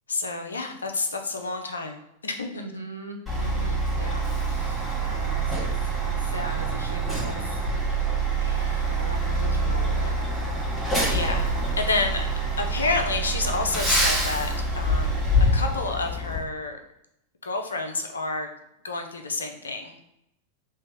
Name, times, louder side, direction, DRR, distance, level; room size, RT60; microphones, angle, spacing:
voice 1, 0.1-2.5 11.1-12.3 12.6-15.2 15.5-16.8 17.4-18.5 18.8-20.0, left 3 dB, 70° left, 5 dB, 0.5 m, -29 dB
voice 2, 2.5-4.2 4.5-8.0 8.4-10.2 11.0-11.4, right 1 dB, 85° right, 1 dB, 0.6 m, -40 dB
Truck, 3.3-16.4, right 2 dB, 5° left, 1.4 m, -26 dB
3.3 x 2.9 x 3.4 m, 0.80 s
figure-of-eight pair, 90°, 0 cm